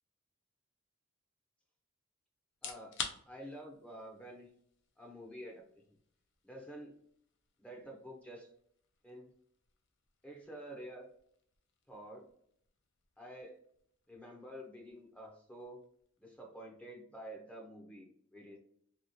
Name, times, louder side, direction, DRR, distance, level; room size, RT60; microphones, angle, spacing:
sound 1, 2.5-17.3, left 6 dB, 60° left, 0.5 m, -52 dB
voice 1, 2.6-2.9 3.3-4.5 5.0-5.6 6.4-6.9 7.6-8.5 9.0-9.3 10.2-11.1 11.9-12.3 13.2-13.6 14.1-15.8 16.2-18.6, right 1 dB, 5° left, 0 dB, 0.6 m, -49 dB
2.9 x 2.8 x 2.7 m, 0.66 s
head